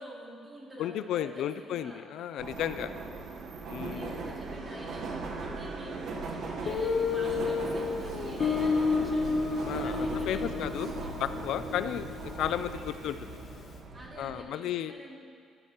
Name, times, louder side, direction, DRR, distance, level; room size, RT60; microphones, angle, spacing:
voice 1, 0.0-2.1 3.8-5.0 5.4-10.6 10.9-11.1 11.7-11.9 13.9-15.2, right 1 dB, 15° right, -4 dB, 2.3 m, -47 dB
voice 2, 0.8-2.9 3.7-4.2 9.6-10.9 11.2-13.4 14.2-14.9, left 10 dB, 75° left, 12 dB, 0.3 m, -33 dB
Subway metro underground, 2.4-14.4, right 3 dB, 60° right, 1.0 m, -38 dB
Guitar, 6.7-13.3, left 5 dB, 40° left, 0.7 m, -31 dB
14.5 x 13.0 x 2.9 m, 2.1 s
cardioid pair, 160°, 0 cm